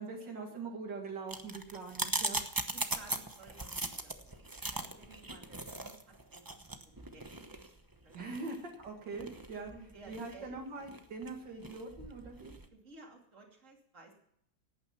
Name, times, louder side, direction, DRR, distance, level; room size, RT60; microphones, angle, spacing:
voice 1, 0.0-2.4 8.1-9.7 10.1-12.5, right 3 dB, 75° right, 1 dB, 2.6 m, -42 dB
sound 1, 1.3-12.7, right 2 dB, 20° right, 0.7 m, -40 dB
voice 2, 2.7-7.7 8.0-8.5 9.7-10.6 12.7-14.1, right 3 dB, 40° right, 1 dB, 3.1 m, -56 dB
17.5 x 9.2 x 5.9 m, 0.72 s
omnidirectional pair, 2.0 m